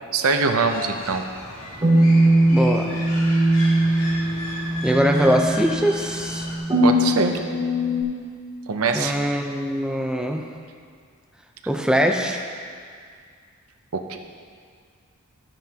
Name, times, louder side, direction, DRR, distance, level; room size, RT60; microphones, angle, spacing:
voice 1, 0.1-1.2 6.8-7.4 8.7-9.2 13.9-14.2, right 4 dB, 70° right, 5 dB, 0.7 m, -22 dB
sound 1, 0.6-6.6, left 1 dB, 65° left, 2.4 m, -35 dB
sound 2, 1.8-8.0, right 1 dB, 20° right, 2.5 m, -20 dB
voice 2, 2.5-2.9 4.8-6.5 8.9-10.4 11.7-12.4, equal, 5° right, 1 dB, 0.7 m, -22 dB
13.0 x 9.1 x 2.9 m, 2.1 s
head